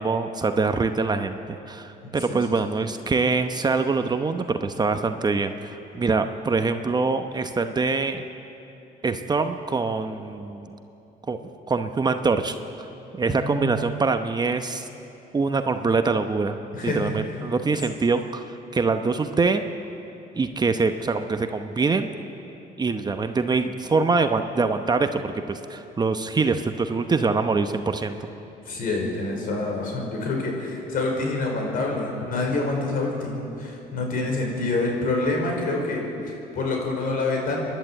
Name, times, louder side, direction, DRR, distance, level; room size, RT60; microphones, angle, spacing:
voice 1, 0.0-1.4 1.7-8.2 9.0-10.7 11.3-11.4 11.7-12.6 13.1-14.9 15.3-16.6 16.9-18.4 18.7-19.7 20.4-22.1 22.8-28.3, right 4 dB, 25° right, 7 dB, 0.9 m, -24 dB
voice 2, 2.0-2.6 13.3-13.7 16.7-17.1 28.7-37.6, left 2 dB, 55° left, 1 dB, 5.2 m, -27 dB
28.5 x 11.5 x 8.4 m, 2.9 s
cardioid pair, 110°, 17 cm